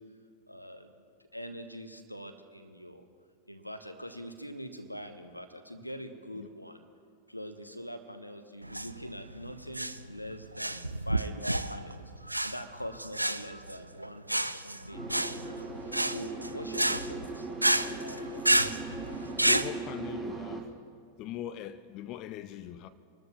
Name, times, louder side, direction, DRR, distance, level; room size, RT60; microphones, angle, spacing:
voice 1, 0.5-1.1 1.3-3.1 3.5-6.8 7.3-11.4 11.6-17.6 18.5-18.7, equal, 90° left, 1.0 m, -44 dB
sound 1, 8.6-19.7, right 1 dB, 85° right, 0.4 m, -30 dB
sound 2, 14.9-20.6, right 2 dB, 10° right, 3.7 m, -39 dB
voice 2, 19.4-20.7 21.2-22.9, left 12 dB, 40° left, 0.5 m, -40 dB
26.0 x 13.0 x 3.1 m
figure-of-eight pair, 90°, 0 cm